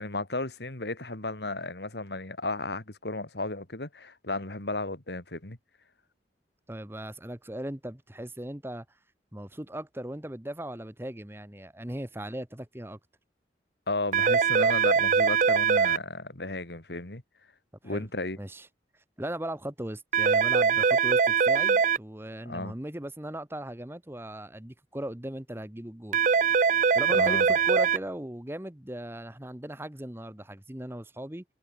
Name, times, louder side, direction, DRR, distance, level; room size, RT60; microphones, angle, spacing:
voice 1, 0.0-5.6 13.9-17.2 17.8-18.4 22.5-22.7 27.1-27.6, left 2 dB, 70° left, 2.6 m, -34 dB
voice 2, 6.7-8.8 9.3-13.0 17.8-18.1 18.4-18.7 19.2-26.2 26.9-31.4, right 1 dB, 15° right, 1.2 m, -38 dB
sound 1, 14.1-16.0 20.1-22.0 26.1-28.0, right 6 dB, 45° right, 0.4 m, -22 dB
head